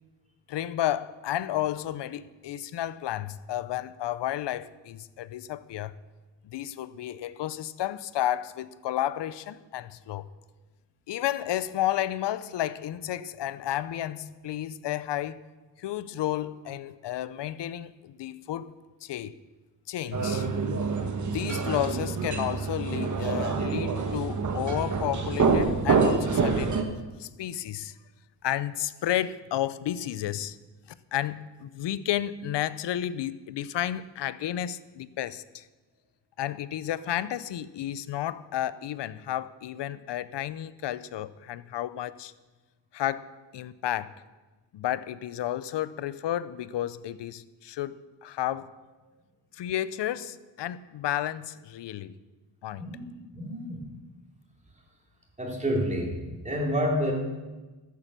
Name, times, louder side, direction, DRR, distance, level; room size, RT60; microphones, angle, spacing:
voice 1, 0.5-6.0 6.4-10.3 11.1-15.4 15.8-18.7 19.0-19.4 19.9-20.5 21.3-26.9 27.2-28.0 28.4-30.6 31.1-35.7 36.4-42.3 42.9-44.1 44.7-48.7 49.5-52.1 52.6-52.9, left 12 dB, 70° left, 0.7 m, -32 dB
sound 1, 20.1-26.8, right 4 dB, 40° right, 1.4 m, -26 dB
voice 2, 52.8-53.1 53.3-53.8 55.4-56.2 56.4-57.1, equal, 15° right, 3.2 m, -28 dB
13.5 x 8.6 x 6.7 m
cardioid pair, 110°, 44 cm